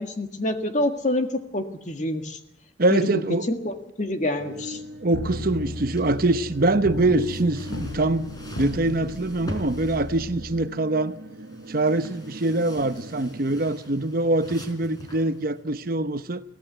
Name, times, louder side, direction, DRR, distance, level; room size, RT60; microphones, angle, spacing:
voice 1, 0.0-2.4 2.9-3.2 3.5-4.8, left 1 dB, 40° left, 1.8 m, -27 dB
voice 2, 2.8-3.5 5.0-8.3 8.6-11.1 11.7-16.4, right 2 dB, 50° right, 0.8 m, -24 dB
sound 1, 4.4-13.7, equal, 70° right, 1.4 m, -41 dB
sound 2, 5.1-10.6, left 2 dB, 80° left, 0.9 m, -36 dB
sound 3, 5.2-15.6, equal, 20° left, 4.1 m, -44 dB
23.0 x 16.5 x 8.0 m
head